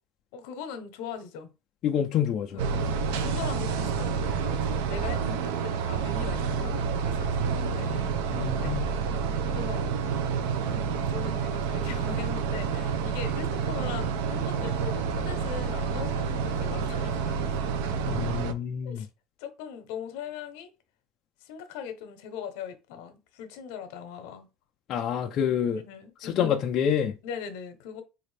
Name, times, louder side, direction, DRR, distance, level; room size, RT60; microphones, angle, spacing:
voice 1, 0.3-1.5 2.5-2.6 3.1-8.8 9.5-10.1 10.6-17.6 18.8-19.1 19.4-20.7 21.4-24.5 25.7-26.4 27.2-28.0, left 7 dB, 70° left, 0.8 m, -40 dB
voice 2, 1.8-2.6 8.3-8.9 18.1-19.0 24.9-25.8 26.2-27.2, left 8 dB, 35° left, 0.3 m, -27 dB
sound 1, 2.6-18.5, right 6 dB, 90° right, 0.5 m, -29 dB
4.0 x 2.5 x 3.2 m
cardioid pair, 180°, 0 cm